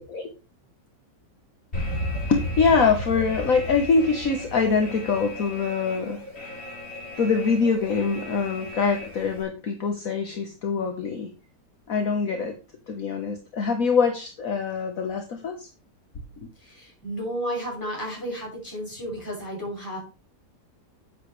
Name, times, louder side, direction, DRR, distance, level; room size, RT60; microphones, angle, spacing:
Alarm, 1.7-9.4, left 1 dB, 35° left, 4.2 m, -34 dB
voice 1, 2.3-6.2 7.2-11.3 11.9-12.5 12.9-15.7, left 5 dB, 55° left, 4 dB, 1.6 m, -24 dB
voice 2, 16.6-20.0, equal, 10° left, -3 dB, 6.2 m, -32 dB
11.0 x 8.4 x 3.3 m, 0.29 s
omnidirectional pair, 1.8 m